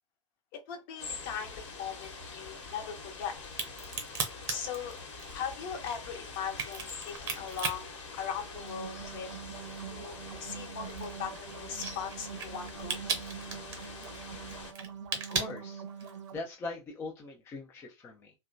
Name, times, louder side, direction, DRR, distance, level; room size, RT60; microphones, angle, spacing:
voice 1, 0.5-3.4 4.5-5.0 5.3-9.3 9.9-13.0, left 7 dB, 45° left, 0.9 m, -39 dB
sound 1, 1.0-14.7, left 4 dB, 60° left, 1.1 m, -45 dB
Crack, 3.4-8.9 9.3-16.3, right 5 dB, 25° right, 0.9 m, -37 dB
sound 2, 8.4-16.4, right 8 dB, 65° right, 0.6 m, -44 dB
voice 2, 14.3-14.6 15.1-18.3, left 3 dB, 15° left, 0.4 m, -42 dB
2.8 x 2.2 x 2.5 m
figure-of-eight pair, 100°, 16 cm